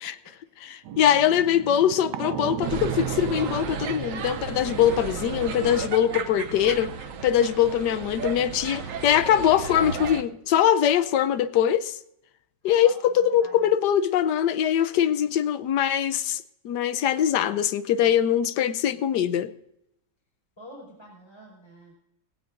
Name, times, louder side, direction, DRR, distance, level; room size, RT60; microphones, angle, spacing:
voice 1, 0.0-0.5 12.6-13.7 20.6-22.0, equal, 15° left, -2 dB, 5.1 m, -48 dB
voice 2, 0.6-6.9 7.2-12.0 12.6-19.5, left 10 dB, 75° left, 13 dB, 1.3 m, -22 dB
sound 1, 0.8-6.9, right 10 dB, 75° right, 1.2 m, -36 dB
sound 2, 2.6-10.2, right 6 dB, 60° right, 1.0 m, -34 dB
18.5 x 17.0 x 2.6 m, 0.81 s
omnidirectional pair, 1.9 m